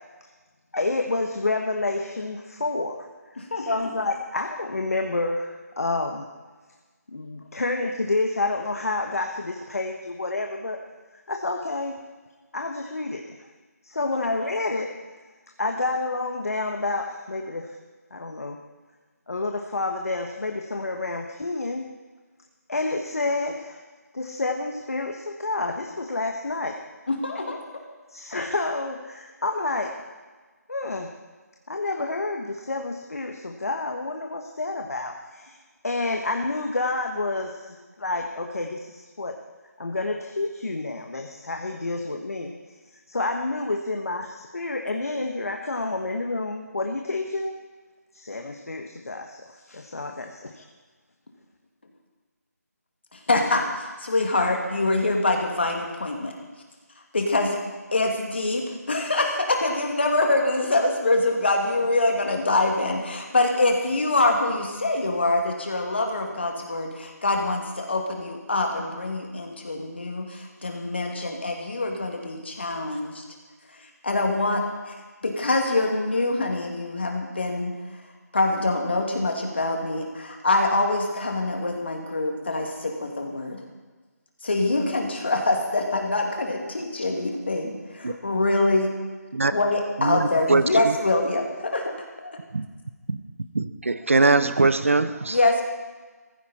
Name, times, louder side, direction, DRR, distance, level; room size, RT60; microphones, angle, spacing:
voice 1, 0.7-3.1 3.3-6.2 7.1-10.8 11.3-12.0 12.5-13.5 13.8-14.9 15.6-17.8 18.1-18.6 19.3-21.9 22.7-23.8 24.1-26.8 28.1-30.0 30.7-31.1 31.7-35.6 35.8-39.4 39.8-42.5 43.1-47.6 48.1-50.6, left 2 dB, 60° left, 1.3 m, -29 dB
voice 2, 27.1-27.6 53.3-56.3 57.1-57.6 57.9-73.2 74.0-74.9 75.2-77.7 78.3-83.6 84.4-89.0 89.5-91.9 92.2-92.4 95.3-95.6, left 2 dB, 40° left, 2.4 m, -24 dB
voice 3, 90.0-91.0 92.5-92.7 93.1-93.2 93.5-95.4, right 3 dB, 50° right, 0.9 m, -22 dB
16.5 x 15.0 x 4.3 m
figure-of-eight pair, 180°, 9 cm